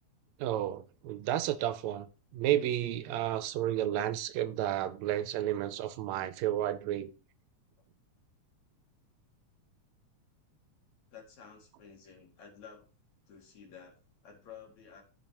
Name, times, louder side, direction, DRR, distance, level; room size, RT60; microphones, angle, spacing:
voice 1, 0.4-2.1 2.3-7.1, right 12 dB, 80° right, 1.8 m, -31 dB
voice 2, 11.1-12.9 13.3-15.0, left 7 dB, 70° left, 3.4 m, -52 dB
14.5 x 5.5 x 2.9 m
omnidirectional pair, 3.3 m